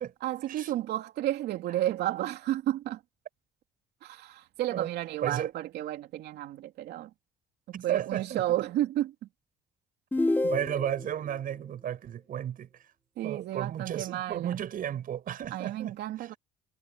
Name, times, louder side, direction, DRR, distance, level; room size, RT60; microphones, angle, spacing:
voice 1, 0.2-3.0 4.0-7.1 7.7-9.3 13.2-14.6 15.5-16.3, right 13 dB, 75° right, 2.9 m, -32 dB
voice 2, 7.7-8.4 10.4-12.8 13.2-16.3, right 10 dB, 55° right, 7.0 m, -34 dB
sound 1, 10.1-11.1, left 2 dB, 10° left, 2.0 m, -28 dB
cardioid pair, 110°, 17 cm